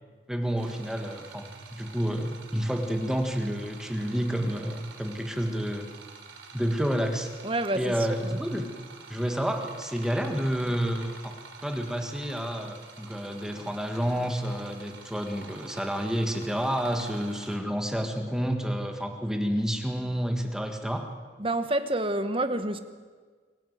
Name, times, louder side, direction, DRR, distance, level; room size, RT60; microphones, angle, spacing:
voice 1, 0.3-5.9 6.5-7.3 7.7-8.7 9.1-11.3 11.6-21.1, equal, 5° right, 4 dB, 1.7 m, -29 dB
sound 1, 0.6-17.6, right 4 dB, 75° right, 3.6 m, -48 dB
voice 2, 7.4-8.4 21.4-22.8, right 1 dB, 30° right, 10 dB, 1.3 m, -28 dB
24.5 x 15.0 x 9.4 m, 1.5 s
head